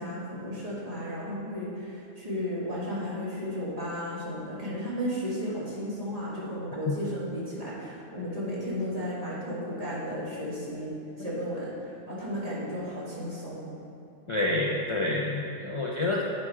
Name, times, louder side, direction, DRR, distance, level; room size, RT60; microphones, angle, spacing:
voice 1, 0.0-13.7, equal, 30° right, -8 dB, 1.8 m, -34 dB
voice 2, 14.3-16.2, left 2 dB, 55° left, -3 dB, 0.3 m, -28 dB
8.5 x 4.3 x 4.7 m, 2.6 s
omnidirectional pair, 1.3 m